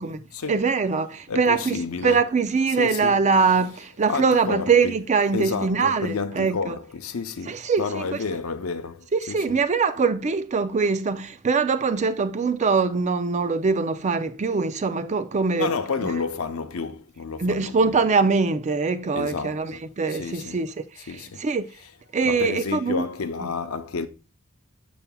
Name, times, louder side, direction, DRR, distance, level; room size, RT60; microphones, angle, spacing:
voice 1, 0.0-6.8 7.5-8.0 9.1-15.7 17.4-21.7 22.1-23.0, right 4 dB, 35° right, 0.4 m, -23 dB
voice 2, 1.3-2.3 2.8-3.3 4.1-4.9 5.3-9.6 15.6-18.0 19.1-19.8 20.1-20.6 21.1-21.4 22.2-24.1, left 4 dB, 80° left, 0.6 m, -30 dB
7.1 x 6.8 x 2.2 m
head